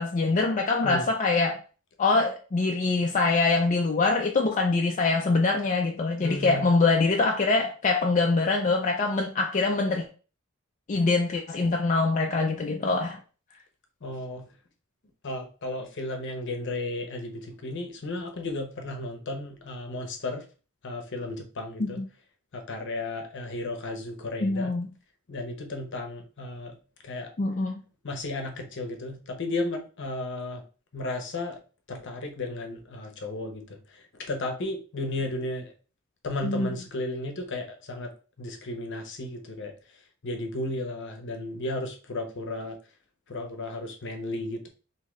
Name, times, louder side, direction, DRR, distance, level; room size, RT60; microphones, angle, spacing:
voice 1, 0.0-1.6 2.0-10.1 10.9-13.2 21.8-22.1 24.4-24.9 27.4-27.8 36.4-36.7, left 3 dB, 35° left, 0.4 m, -24 dB
voice 2, 6.2-6.7 14.0-14.5 15.2-20.4 20.8-22.0 22.5-24.7 25.3-26.8 27.0-27.3 28.0-30.6 30.9-31.6 31.9-35.7 36.2-38.1 38.4-39.7 40.2-42.8 43.3-44.7, left 2 dB, 60° left, 0.8 m, -34 dB
3.6 x 2.8 x 3.1 m
head